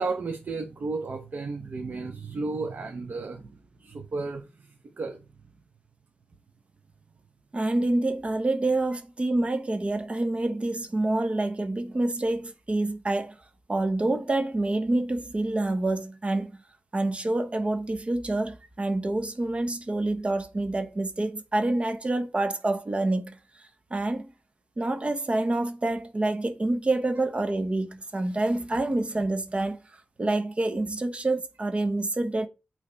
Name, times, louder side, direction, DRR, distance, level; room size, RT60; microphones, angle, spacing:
voice 1, 0.0-4.7 5.0-5.2, right 3 dB, 60° right, 0.9 m, -33 dB
voice 2, 7.5-13.4 13.7-16.6 16.9-23.4 23.9-24.3 24.8-29.8 30.2-32.5, right 2 dB, 35° right, 1.0 m, -27 dB
8.7 x 3.3 x 4.0 m
cardioid pair, 75°, 4 cm